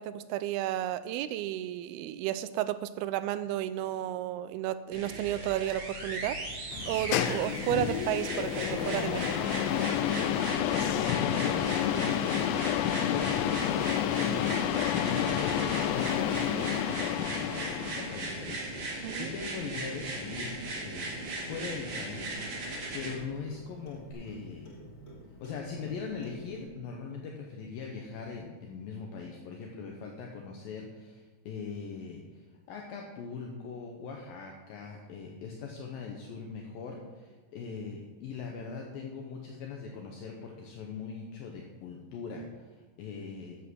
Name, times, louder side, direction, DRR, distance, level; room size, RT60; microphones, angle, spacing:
voice 1, 0.0-6.4 6.9-9.5 19.0-19.3, right 12 dB, 80° right, 12 dB, 2.5 m, -32 dB
sound 1, 4.9-23.1 24.1-24.2, right 2 dB, 45° right, 2.8 m, -38 dB
sound 2, 6.7-18.3, left 11 dB, 90° left, 2.0 m, -30 dB
voice 2, 10.9-12.3 13.0-14.6 15.0-21.2 21.5-24.7 25.4-43.6, left 5 dB, 70° left, 1 dB, 2.6 m, -41 dB
Clock, 17.5-26.6, equal, 40° left, 0.9 m, -50 dB
11.5 x 7.6 x 6.2 m, 1.3 s
omnidirectional pair, 4.6 m